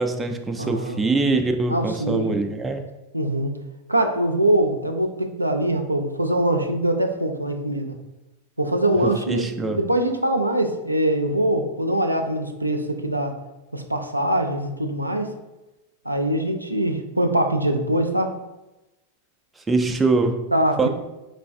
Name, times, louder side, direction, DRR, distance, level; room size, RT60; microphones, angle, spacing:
voice 1, 0.0-2.9 9.0-9.8 19.7-20.5 20.8-20.9, right 3 dB, 10° right, 0.3 m, -23 dB
voice 2, 0.6-1.0 1.7-2.4 3.1-3.6 3.9-8.0 8.6-13.4 13.7-15.3 16.1-18.3 20.5-20.9, right 1 dB, 85° right, 0.4 m, -23 dB
3.7 x 3.2 x 2.6 m
figure-of-eight pair, 90°, 0 cm